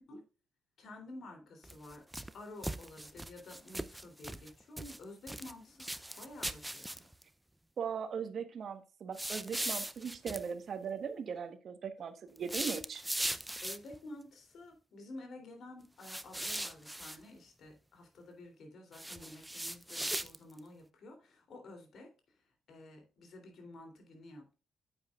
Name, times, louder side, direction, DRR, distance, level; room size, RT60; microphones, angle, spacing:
voice 1, 0.8-2.0 2.3-5.9 6.2-7.1 13.6-22.1 22.7-24.6, left 2 dB, 60° left, 4 dB, 3.2 m, -51 dB
sound 1, 1.6-2.3 2.6-4.5 4.8-5.5 5.8-7.2 9.1-10.4 12.4-14.0 16.0-17.2 18.9-20.6, right 1 dB, 5° right, 0.6 m, -39 dB
voice 2, 7.8-13.0, right 7 dB, 55° right, 9 dB, 1.3 m, -39 dB
9.5 x 8.1 x 2.5 m, 0.33 s
cardioid pair, 90°, 0 cm